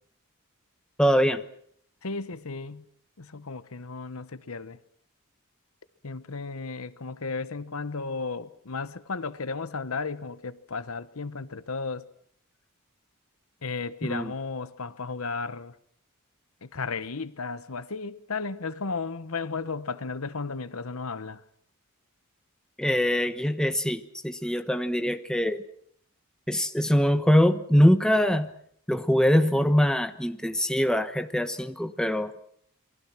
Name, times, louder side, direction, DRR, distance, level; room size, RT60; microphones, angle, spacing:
voice 1, 1.0-1.4 14.0-14.3 22.8-25.6 26.5-28.5 28.9-32.3, equal, 5° left, 1.1 m, -23 dB
voice 2, 2.0-2.8 3.2-4.8 6.0-12.0 13.6-15.7 16.6-21.4, left 4 dB, 75° left, 1.1 m, -34 dB
28.5 x 23.0 x 6.1 m
head